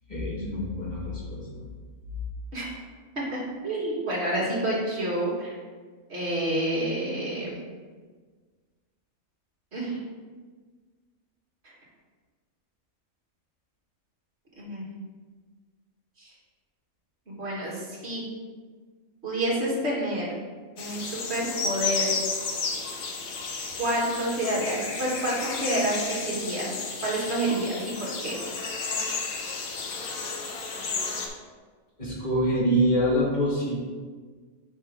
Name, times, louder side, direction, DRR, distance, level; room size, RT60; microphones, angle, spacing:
voice 1, 0.1-1.7 32.0-33.8, equal, 30° left, -6 dB, 1.9 m, -25 dB
voice 2, 3.2-5.5 6.1-7.6 9.7-10.0 14.6-14.9 16.2-16.3 17.3-18.2 19.2-20.3 20.8-22.1 23.8-26.8 27.0-28.4, right 1 dB, 50° right, -5 dB, 2.3 m, -28 dB
sound 1, 20.8-31.3, left 4 dB, 75° left, 1.4 m, -32 dB
8.5 x 4.8 x 3.7 m, 1.5 s
omnidirectional pair, 1.5 m